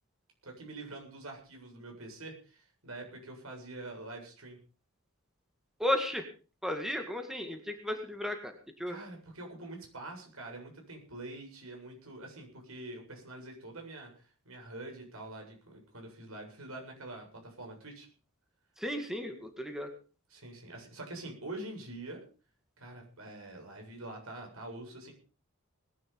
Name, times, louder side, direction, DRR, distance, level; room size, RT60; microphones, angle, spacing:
voice 1, 0.4-4.6 8.9-18.1 20.3-22.2 22.8-25.1, right 2 dB, 75° right, 2 dB, 7.6 m, -45 dB
voice 2, 5.8-6.2 6.6-9.0 18.8-19.9, left 1 dB, ahead, 5 dB, 2.0 m, -34 dB
20.0 x 11.0 x 5.3 m, 0.37 s
head